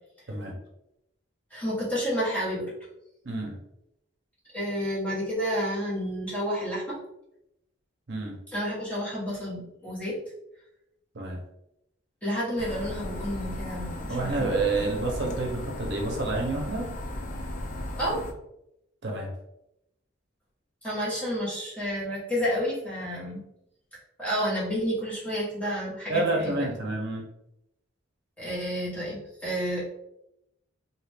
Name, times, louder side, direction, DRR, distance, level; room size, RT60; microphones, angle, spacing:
voice 1, 1.5-2.7 4.5-7.0 8.5-10.2 12.2-15.0 18.0-18.2 20.8-23.4 24.2-26.7 28.4-29.8, equal, 5° left, -8 dB, 1.0 m, -30 dB
sound 1, 12.6-18.3, left 1 dB, 40° left, 0.4 m, -36 dB
voice 2, 14.1-16.9 19.0-19.3 26.1-27.2, right 2 dB, 60° right, 0 dB, 0.7 m, -29 dB
2.6 x 2.4 x 3.3 m, 0.83 s
head